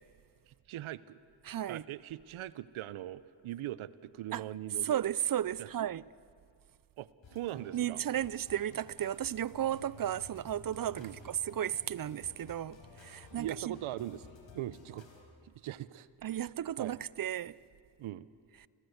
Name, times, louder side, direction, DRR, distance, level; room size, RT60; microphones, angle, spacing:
voice 1, 0.5-1.2 1.7-4.9 5.6-5.9 7.0-8.0 11.0-11.2 13.3-14.3 14.5-15.1 15.4-16.4 16.8-17.0 18.0-18.3, right 13 dB, 80° right, 0.7 m, -41 dB
voice 2, 1.4-1.8 4.3-4.4 4.8-6.0 7.7-13.8 16.2-17.6, right 11 dB, 45° right, 0.5 m, -34 dB
sound 1, 7.2-15.2, left 3 dB, 70° left, 4.5 m, -54 dB
29.0 x 15.5 x 8.0 m
cardioid pair, 60°, 48 cm